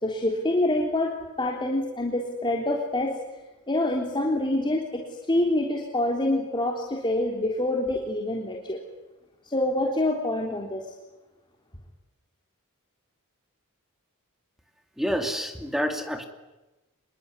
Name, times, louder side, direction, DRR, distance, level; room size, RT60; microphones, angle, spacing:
voice 1, 0.0-3.1 3.7-5.0 5.3-8.8 9.4-10.8, left 1 dB, 20° left, 0 dB, 3.5 m, -26 dB
voice 2, 15.0-16.3, equal, ahead, 5 dB, 2.7 m, -28 dB
27.0 x 22.5 x 9.8 m, 1.1 s
head